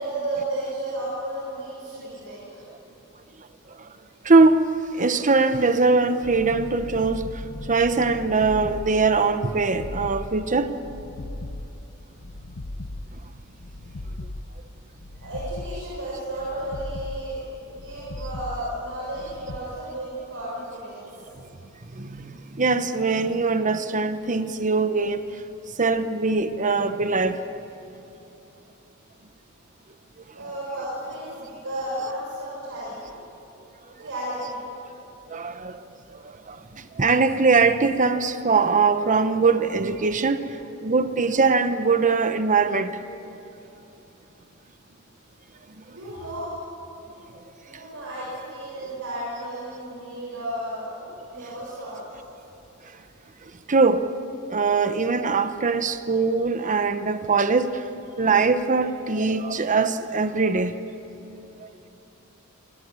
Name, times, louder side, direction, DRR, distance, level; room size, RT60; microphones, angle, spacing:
voice 1, 0.0-2.6 15.2-21.1 30.3-33.3 34.0-34.7 45.9-46.6 47.6-51.0 51.3-52.0, right 1 dB, 65° right, 7.2 m, -33 dB
voice 2, 4.2-4.7 5.0-7.2 7.7-10.7 22.0-25.2 25.8-27.4 35.3-35.8 36.1-42.9 53.7-54.0 54.5-57.8 58.2-60.7 61.6-61.7, right 4 dB, 35° right, 0.9 m, -22 dB
sound 1, 6.2-19.6, left 1 dB, 80° left, 1.2 m, -38 dB
27.5 x 18.0 x 9.7 m
head